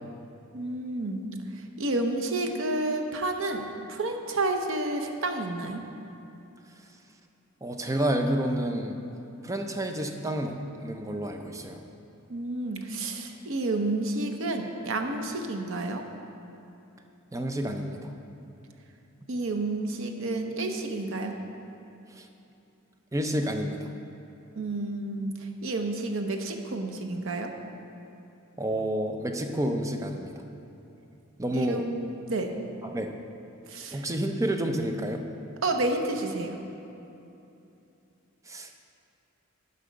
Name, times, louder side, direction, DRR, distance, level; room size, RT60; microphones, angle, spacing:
voice 1, 0.5-1.3 1.8-3.6 3.9-5.8 12.3-16.0 19.3-21.3 24.6-25.3 25.6-27.5 31.5-32.5 33.7-34.1 35.6-36.5, right 2 dB, 65° right, 4 dB, 0.8 m, -30 dB
voice 2, 7.6-9.0 9.4-11.8 17.3-18.1 22.2-22.3 23.1-23.9 28.6-30.3 31.4-31.9 32.8-33.1 33.9-35.2 38.5-38.7, right 1 dB, 15° right, 4 dB, 0.5 m, -29 dB
10.0 x 5.7 x 5.1 m, 2.9 s
head